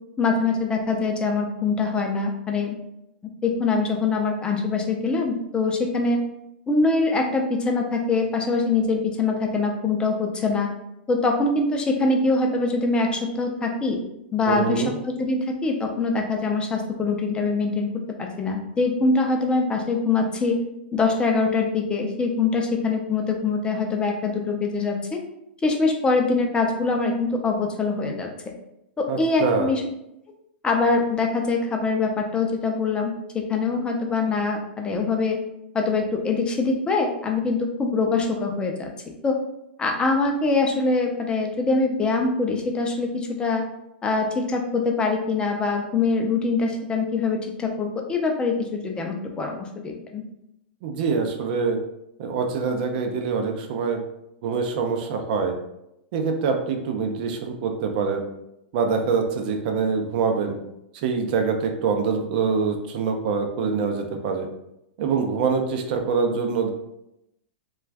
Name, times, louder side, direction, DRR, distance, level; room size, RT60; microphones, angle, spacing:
voice 1, 0.2-2.8 3.4-6.2 6.7-10.7 11.1-14.0 14.3-17.9 18.2-20.6 20.9-25.2 25.6-28.3 29.0-29.8 30.6-35.4 35.7-39.4 39.8-43.6 44.0-49.6 49.8-50.2, left 3 dB, 15° left, 2 dB, 0.5 m, -23 dB
voice 2, 14.5-15.0 29.1-29.7 50.8-51.8 52.2-54.0 54.4-55.6 56.1-58.2 58.7-60.6 60.9-64.5 65.0-66.7, right 5 dB, 55° right, 4 dB, 0.5 m, -24 dB
2.4 x 2.3 x 3.3 m, 0.84 s
hypercardioid pair, 130°, 6 cm